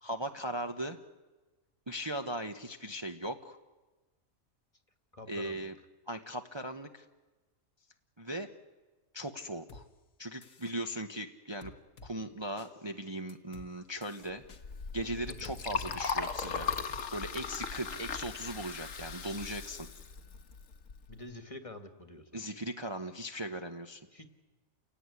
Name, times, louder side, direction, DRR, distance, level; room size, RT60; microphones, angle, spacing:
voice 1, 0.0-1.0 1.9-3.6 5.3-5.7 6.1-7.0 8.2-8.5 9.1-9.9 10.2-11.7 12.0-14.4 14.9-19.9 22.3-24.0, right 1 dB, 20° right, 5 dB, 1.0 m, -38 dB
voice 2, 5.1-5.7 15.3-15.9 16.5-16.9 21.1-22.3 24.1-24.3, left 1 dB, 25° left, 8 dB, 1.6 m, -48 dB
sound 1, 9.7-9.8 10.4-10.8 11.6-12.1 12.6-12.7 13.3-13.7 14.0-14.6 15.4-15.6 15.9-16.1 16.4-16.5 16.9-17.2, left 3 dB, 90° left, 1.9 m, -52 dB
Liquid, 14.5-21.1, left 5 dB, 65° left, 1.6 m, -38 dB
29.5 x 17.5 x 9.7 m, 1.2 s
omnidirectional pair, 1.4 m